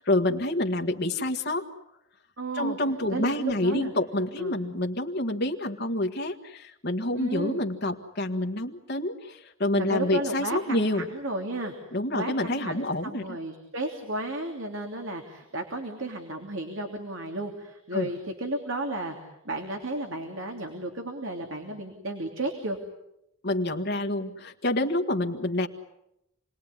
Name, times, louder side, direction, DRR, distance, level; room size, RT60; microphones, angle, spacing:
voice 1, 0.0-1.6 2.5-11.1 11.9-13.4 17.9-18.1 23.4-25.7, left 1 dB, 50° left, 3 dB, 1.7 m, -28 dB
voice 2, 2.4-2.8 3.1-3.9 4.4-4.6 7.1-7.7 9.8-11.7 12.1-19.2 19.4-22.8, right 1 dB, 65° right, 3 dB, 3.1 m, -33 dB
29.0 x 20.5 x 9.9 m, 0.85 s
head